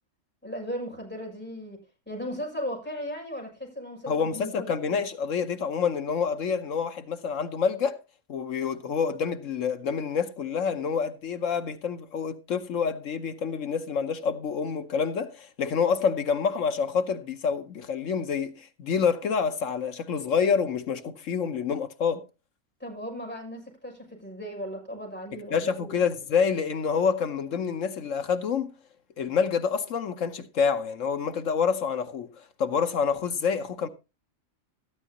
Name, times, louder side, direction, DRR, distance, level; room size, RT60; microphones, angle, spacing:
voice 1, 0.4-4.7 22.8-26.0, equal, 10° left, 6.8 m, -37 dB
voice 2, 4.1-8.0 8.3-22.2 25.5-28.7 29.2-33.9, left 6 dB, 70° left, 1.3 m, -27 dB
13.5 x 12.0 x 2.9 m
omnidirectional pair, 1.4 m